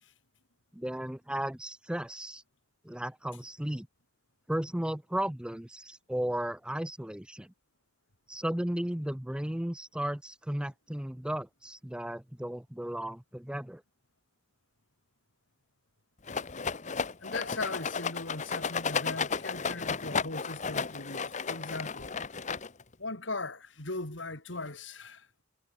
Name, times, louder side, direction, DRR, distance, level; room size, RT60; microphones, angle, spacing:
voice 1, 0.7-2.4 2.8-3.9 4.5-7.5 8.3-13.8, right 1 dB, 5° right, 0.5 m, -35 dB
Rattle, 16.3-22.9, left 5 dB, 35° left, 1.0 m, -33 dB
voice 2, 17.2-22.1 23.0-25.3, left 2 dB, 70° left, 3.5 m, -39 dB
head